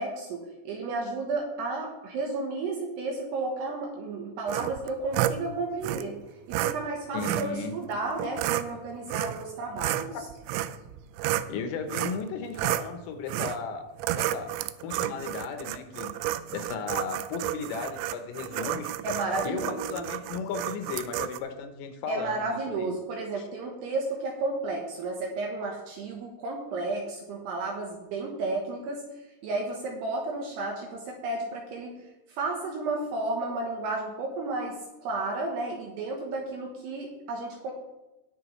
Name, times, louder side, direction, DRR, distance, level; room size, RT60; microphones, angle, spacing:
voice 1, 0.0-6.1 6.5-10.2 19.0-20.1 22.1-31.9 32.3-37.7, right 3 dB, 70° right, 1 dB, 2.7 m, -32 dB
sound 1, 4.5-5.4 5.8-6.0 6.5-6.7 7.2-7.5 8.2-8.7 9.1-9.5 9.8-11.5 11.9-12.2 12.5-12.9 13.3-13.6 14.0-21.4, right 14 dB, 85° right, 2.7 m, -31 dB
voice 2, 7.1-7.7 11.5-13.9 14.2-14.5 14.8-16.1 16.5-18.9 19.5-23.0 23.4-23.5, left 5 dB, 80° left, 6 dB, 3.5 m, -35 dB
20.0 x 6.8 x 3.2 m, 1.0 s
omnidirectional pair, 5.9 m